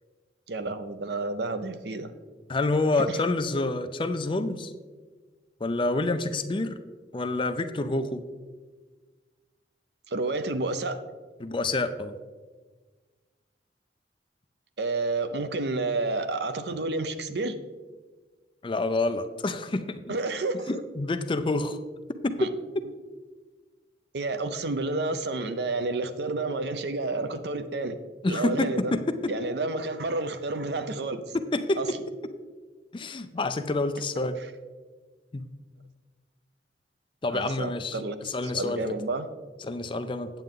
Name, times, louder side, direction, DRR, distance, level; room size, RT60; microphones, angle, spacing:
voice 1, 0.5-2.1 10.1-11.0 14.8-17.5 20.1-20.7 22.4-22.5 24.1-28.0 28.3-28.9 29.3-31.2 31.8-31.9 37.3-39.3, right 3 dB, 70° right, 10 dB, 0.6 m, -30 dB
voice 2, 2.5-4.7 5.6-6.8 7.1-8.2 11.4-12.2 18.6-20.2 20.7-21.8 22.2-22.5 28.2-29.3 31.3-31.8 32.9-34.4 35.3-35.4 37.2-38.8 39.6-40.3, left 2 dB, 30° left, 9 dB, 0.5 m, -28 dB
9.1 x 8.0 x 3.7 m, 1.4 s
head